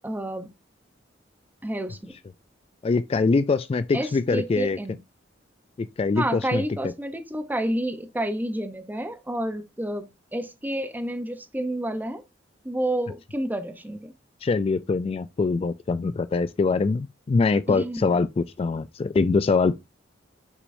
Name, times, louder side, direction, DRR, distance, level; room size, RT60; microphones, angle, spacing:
voice 1, 0.0-0.5 1.6-2.1 3.9-5.0 6.1-10.1 10.3-12.2 12.6-14.1 17.7-18.1, right 1 dB, 10° right, 0.7 m, -29 dB
voice 2, 2.8-4.8 5.8-6.6 14.4-19.8, left 4 dB, 30° left, 0.3 m, -23 dB
6.4 x 6.0 x 2.6 m
head